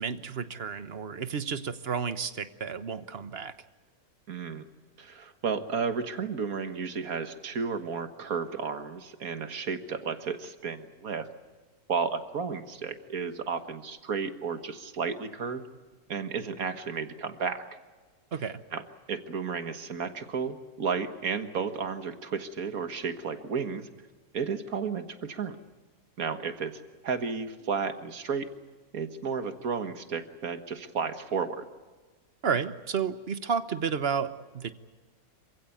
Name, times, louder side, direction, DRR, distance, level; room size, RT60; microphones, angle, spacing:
voice 1, 0.0-3.5 18.3-18.6 32.4-34.7, right 6 dB, 45° right, 12 dB, 1.1 m, -31 dB
voice 2, 4.3-4.7 5.0-11.3 11.9-15.6 16.1-17.6 18.7-18.8 19.1-23.9 24.3-25.6 26.2-28.5 28.9-31.6, right 5 dB, 70° right, 8 dB, 1.9 m, -33 dB
27.0 x 16.0 x 9.3 m, 1.3 s
omnidirectional pair, 1.6 m